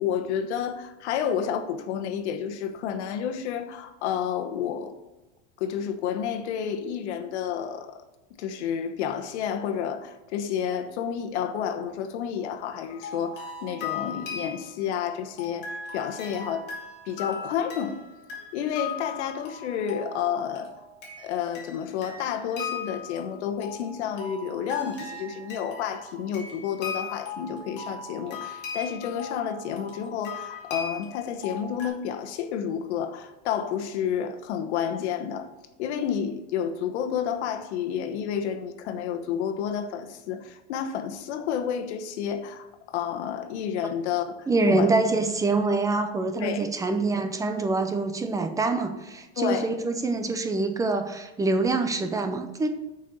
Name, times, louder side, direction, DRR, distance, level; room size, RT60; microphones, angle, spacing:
voice 1, 0.0-4.9 5.6-8.0 8.4-16.7 17.1-18.0 18.5-20.7 21.2-35.5 35.8-44.9 46.3-46.6 49.4-49.7, left 8 dB, 80° left, 1.1 m, -30 dB
sound 1, 12.9-31.9, left 5 dB, 30° left, 2.3 m, -38 dB
voice 2, 44.5-52.7, right 3 dB, 10° right, 0.5 m, -25 dB
6.7 x 5.5 x 6.6 m
supercardioid pair, 150°, 34 cm